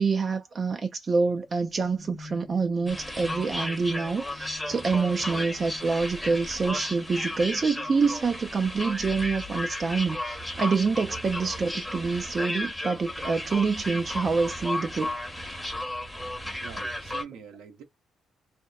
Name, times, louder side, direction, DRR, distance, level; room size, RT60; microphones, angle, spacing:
voice 1, 0.0-15.1, right 4 dB, 40° right, 0.4 m, -26 dB
sound 1, 1.2-9.0, left 2 dB, 35° left, 0.7 m, -49 dB
sound 2, 2.9-17.2, left 1 dB, 5° left, 0.8 m, -34 dB
voice 2, 16.6-17.8, right 7 dB, 90° right, 0.7 m, -45 dB
2.8 x 2.0 x 2.2 m
cardioid pair, 90°, 0 cm